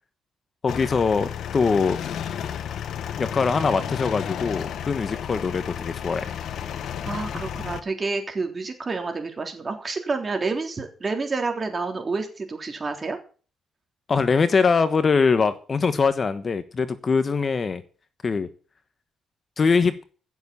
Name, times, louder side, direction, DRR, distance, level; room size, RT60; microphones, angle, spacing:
voice 1, 0.6-2.0 3.2-6.4 14.1-17.8 18.2-18.5 19.6-20.0, left 5 dB, 40° left, 11 dB, 1.2 m, -22 dB
sound 1, 0.7-7.8, left 8 dB, 70° left, 1.2 m, -32 dB
voice 2, 7.1-13.2, right 4 dB, 30° right, 4 dB, 3.6 m, -29 dB
15.5 x 7.2 x 7.0 m, 0.39 s
cardioid pair, 90°, 0 cm